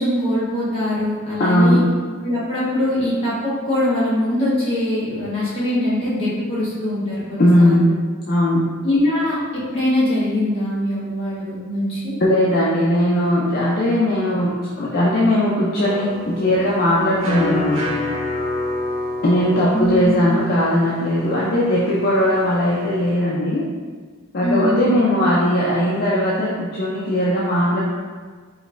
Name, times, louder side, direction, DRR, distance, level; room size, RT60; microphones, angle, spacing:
voice 1, 0.0-1.8 2.2-7.9 8.8-12.1 19.7-20.2 24.4-24.9, left 1 dB, 25° left, -10 dB, 1.4 m, -22 dB
voice 2, 1.4-1.8 7.4-7.9 8.3-8.6 12.2-14.5 14.8-17.9 19.2-23.6 24.3-27.8, left 1 dB, 45° left, -6 dB, 0.5 m, -18 dB
sound 1, 15.8-23.2, left 2 dB, 65° right, 0.9 m, -29 dB
5.0 x 3.1 x 2.5 m, 1.5 s
head